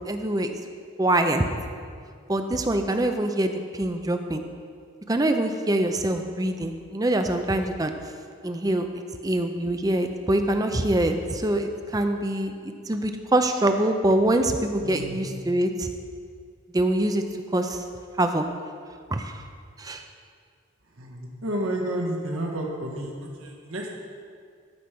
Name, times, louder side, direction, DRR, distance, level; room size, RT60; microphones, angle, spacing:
voice 1, 0.1-0.5 1.0-1.4 2.3-4.4 5.1-7.9 8.4-8.9 9.2-15.9 16.7-17.2 17.5-17.8 18.2-18.4 19.1-19.4 19.8-20.0, right 1 dB, 15° right, 6 dB, 0.5 m, -24 dB
voice 2, 14.8-15.2 20.9-23.9, right 1 dB, 80° right, 0 dB, 1.5 m, -31 dB
14.0 x 5.0 x 6.0 m, 2.2 s
head